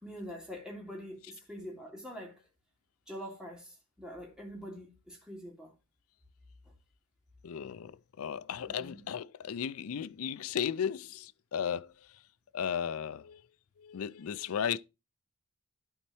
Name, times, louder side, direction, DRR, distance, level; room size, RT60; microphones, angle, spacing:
voice 1, 0.0-2.4 3.1-5.7 8.7-9.0, equal, 5° right, 2.9 m, -45 dB
voice 2, 7.4-12.2 12.5-13.4 13.8-14.8, left 8 dB, 70° left, 0.4 m, -35 dB
11.5 x 4.4 x 4.3 m
head